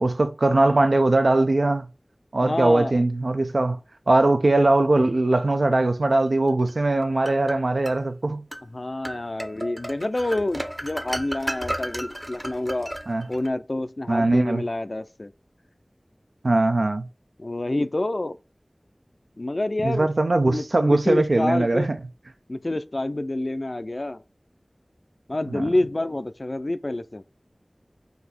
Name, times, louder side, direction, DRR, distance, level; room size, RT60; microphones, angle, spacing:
voice 1, 0.0-1.9 2.3-3.8 4.1-8.4 13.1-13.3 14.1-14.6 16.4-17.1 19.8-22.0 25.5-25.7, right 2 dB, 85° right, 0.5 m, -21 dB
voice 2, 2.4-3.0 8.7-12.9 13.3-15.3 17.4-18.4 19.4-21.9 22.5-24.2 25.3-27.2, left 2 dB, 55° left, 0.3 m, -28 dB
sound 1, 6.7-8.0 8.5-8.7 9.0-13.5, right 1 dB, 20° right, 0.6 m, -34 dB
4.0 x 2.7 x 4.2 m
wide cardioid pair, 45°, 0 cm